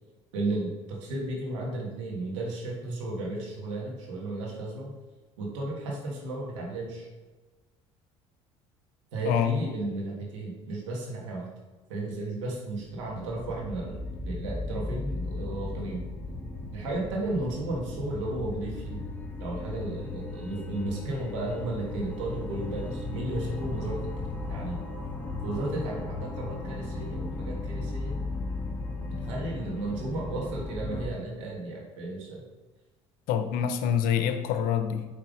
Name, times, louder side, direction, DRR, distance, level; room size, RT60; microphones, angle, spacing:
voice 1, 0.3-0.7 1.0-4.9 5.4-7.1 9.1-11.5 11.9-14.0 14.2-16.0 16.7-19.0 19.4-24.0 24.5-24.8 25.4-28.2 29.1-32.4, right 2 dB, 90° right, -2 dB, 1.6 m, -34 dB
voice 2, 9.2-9.6 33.3-35.1, left 8 dB, 75° left, 8 dB, 0.6 m, -26 dB
sound 1, 12.9-31.1, left 2 dB, 10° left, 1.0 m, -36 dB
5.5 x 3.4 x 5.0 m, 1.2 s
hypercardioid pair, 65°, 15 cm